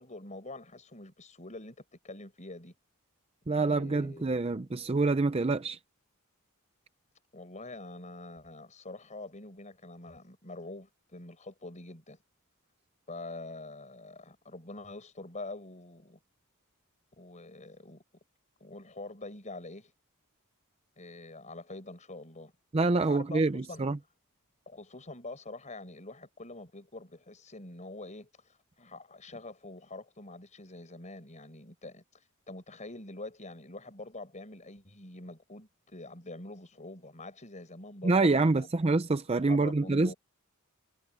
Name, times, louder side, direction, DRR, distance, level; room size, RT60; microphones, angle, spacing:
voice 1, 0.0-2.7 3.5-4.4 7.3-12.2 13.1-16.2 17.2-18.0 18.6-19.9 21.0-22.5 22.9-23.9 24.6-38.7 39.3-40.2, left 2 dB, 35° left, 5.0 m, -45 dB
voice 2, 3.5-5.8 22.7-24.0 38.0-40.1, right 3 dB, 25° right, 0.5 m, -26 dB
head